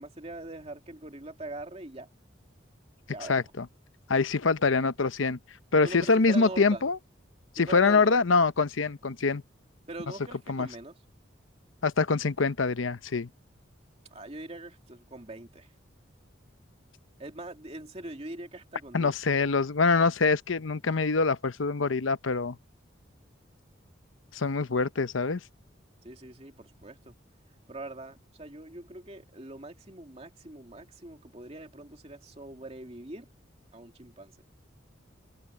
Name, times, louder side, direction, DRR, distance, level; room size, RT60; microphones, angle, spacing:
voice 1, 0.0-2.1 3.1-3.4 5.8-6.8 7.6-8.2 9.9-11.0 14.1-15.7 17.2-19.1 26.0-27.1 27.7-33.3 33.7-34.4, right 2 dB, 30° right, 2.5 m, -42 dB
voice 2, 3.3-3.7 4.1-5.4 5.7-7.0 7.6-9.4 10.5-10.7 11.8-13.3 18.9-22.6 24.3-25.4, left 4 dB, 90° left, 0.8 m, -25 dB
open air
head